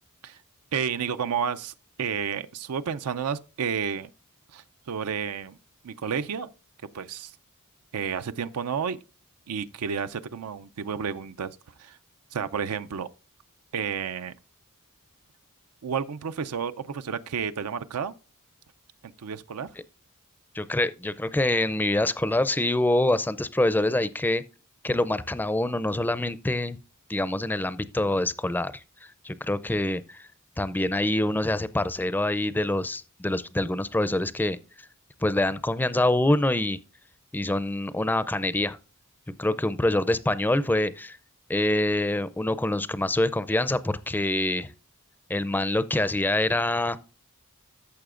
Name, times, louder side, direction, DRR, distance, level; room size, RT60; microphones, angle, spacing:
voice 1, 0.7-1.7 2.0-4.1 4.5-5.6 5.8-6.5 6.9-7.3 7.9-9.0 9.5-11.5 11.8-12.0 12.3-13.1 13.7-14.3 15.8-18.1 19.0-19.7, right 7 dB, 85° right, 0.5 m, -31 dB
voice 2, 20.5-24.4 24.8-26.8 27.1-28.7 29.2-30.2 30.6-34.6 35.2-36.8 37.3-38.8 39.4-41.2 41.5-44.7 45.3-47.0, left 1 dB, 10° left, 0.4 m, -25 dB
14.0 x 6.7 x 2.4 m
head